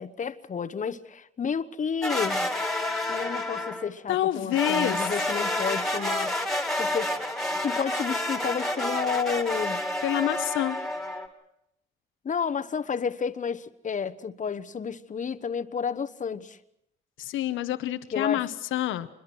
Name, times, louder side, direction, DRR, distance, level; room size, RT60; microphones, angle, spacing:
voice 1, 0.0-2.5 3.1-6.4 6.8-7.1 7.6-9.8 12.2-16.6 18.1-18.5, left 6 dB, 40° left, 1.1 m, -31 dB
sound 1, 2.0-3.9 4.5-11.3, left 1 dB, ahead, 2.7 m, -29 dB
voice 2, 4.1-5.1 10.0-10.8 17.2-19.1, left 13 dB, 85° left, 1.0 m, -27 dB
26.5 x 21.5 x 6.2 m
cardioid pair, 90°, 20 cm